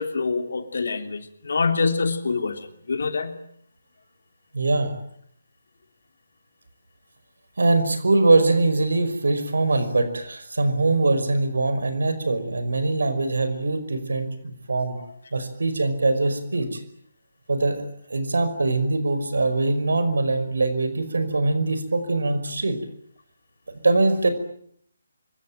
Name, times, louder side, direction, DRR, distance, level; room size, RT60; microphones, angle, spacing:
voice 1, 0.0-3.3, left 4 dB, 55° left, 7 dB, 3.2 m, -25 dB
voice 2, 4.5-4.9 7.6-15.0 15.3-16.8 17.5-17.8 18.1-22.8 23.8-24.3, right 2 dB, 60° right, 10 dB, 5.3 m, -22 dB
26.0 x 23.5 x 9.2 m, 0.67 s
figure-of-eight pair, 145°, 0 cm